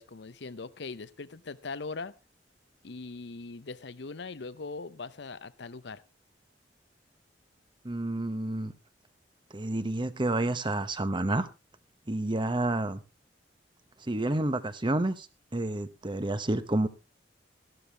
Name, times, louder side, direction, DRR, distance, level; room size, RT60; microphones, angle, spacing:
voice 1, 0.0-2.1 2.8-6.0, left 4 dB, 70° left, 16 dB, 0.8 m, -40 dB
voice 2, 7.8-8.7 9.5-11.5 12.1-13.0 14.0-15.3 15.5-16.9, right 2 dB, 25° right, 12 dB, 0.9 m, -29 dB
13.5 x 12.5 x 3.4 m, 0.27 s
head